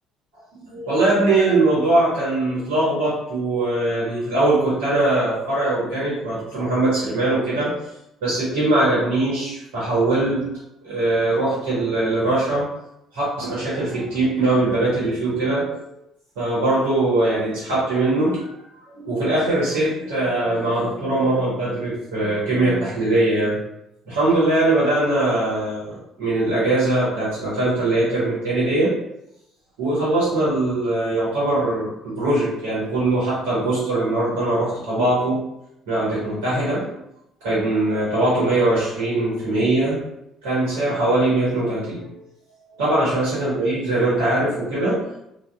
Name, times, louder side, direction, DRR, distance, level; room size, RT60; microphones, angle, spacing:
voice 1, 0.6-7.7 8.2-10.5 10.8-12.7 13.1-15.9 16.4-18.5 18.9-23.6 24.1-29.0 29.8-35.4 35.9-36.9 37.4-40.0 40.4-42.1 42.8-45.0, right 2 dB, 80° right, -9 dB, 1.0 m, -21 dB
2.6 x 2.2 x 2.3 m, 0.84 s
hypercardioid pair, 60°, 0 cm